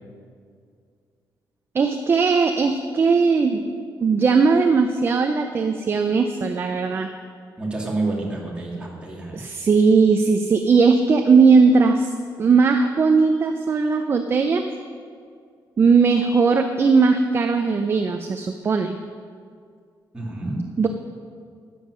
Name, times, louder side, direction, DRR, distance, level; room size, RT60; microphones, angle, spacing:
voice 1, 1.7-3.6 4.0-7.1 9.3-12.1 12.4-14.6 15.8-19.0 20.8-20.9, right 4 dB, 30° right, 6 dB, 0.6 m, -18 dB
voice 2, 7.6-9.4 20.1-20.6, right 2 dB, 15° right, -3 dB, 2.3 m, -28 dB
12.5 x 9.5 x 6.3 m, 2.2 s
cardioid pair, 160°, 8 cm